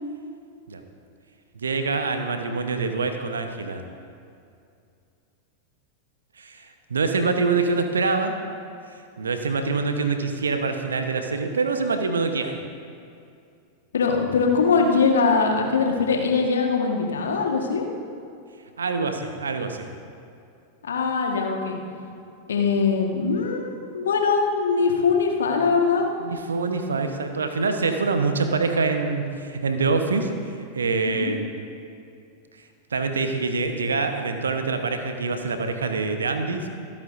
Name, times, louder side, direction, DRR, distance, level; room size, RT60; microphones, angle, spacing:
voice 1, 1.5-3.8 6.4-8.4 9.2-12.6 18.8-19.9 26.2-30.3 30.6-31.5 32.9-36.7, right 4 dB, 70° right, 6 dB, 1.0 m, -25 dB
voice 2, 13.9-17.8 20.8-21.8 22.5-26.1 31.1-31.4, left 5 dB, 65° left, 1 dB, 1.5 m, -22 dB
25.5 x 8.8 x 2.6 m, 2.5 s
figure-of-eight pair, 90°, 0 cm